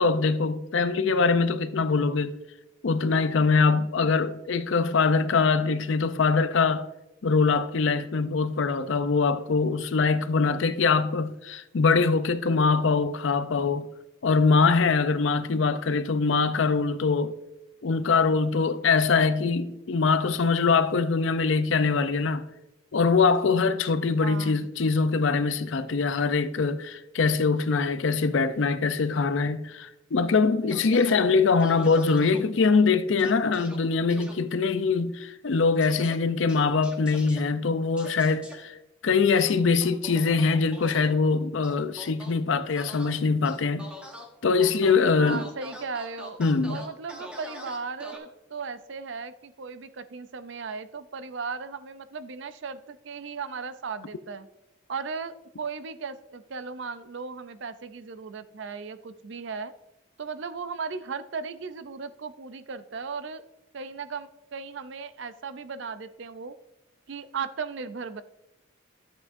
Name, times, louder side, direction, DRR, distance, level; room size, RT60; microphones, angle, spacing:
voice 1, 0.0-2.4 2.8-6.9 7.2-13.9 14.2-17.4 17.8-22.5 22.9-38.7 39.0-43.9 44.4-45.4 46.4-46.8, left 4 dB, 65° left, 0.5 m, -23 dB
voice 2, 24.2-24.7 45.2-46.4 46.7-54.5 54.9-59.7 60.2-63.4 63.7-66.6 67.1-68.2, right 5 dB, 60° right, 0.5 m, -36 dB
sound 1, 30.7-31.2 31.6-32.4 33.2-33.8 34.1-34.3 35.8-36.1 36.5-37.4 38.0-38.5 39.3-41.1 41.6-42.3 42.8-43.1 43.4-44.2 44.6-44.9 45.3-48.2, equal, 5° right, 1.1 m, -43 dB
12.0 x 8.2 x 2.6 m
head